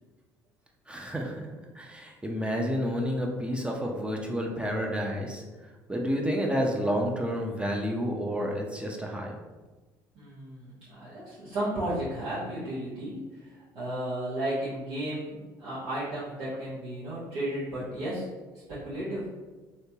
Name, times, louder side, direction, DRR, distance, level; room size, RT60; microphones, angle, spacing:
voice 1, 0.9-1.4 1.7-5.4 5.9-9.3, equal, 10° right, 0 dB, 0.6 m, -30 dB
voice 2, 10.1-18.2 18.7-19.3, right 1 dB, 75° right, -12 dB, 1.1 m, -34 dB
3.2 x 2.9 x 2.8 m, 1.2 s
hypercardioid pair, 70°, 10 cm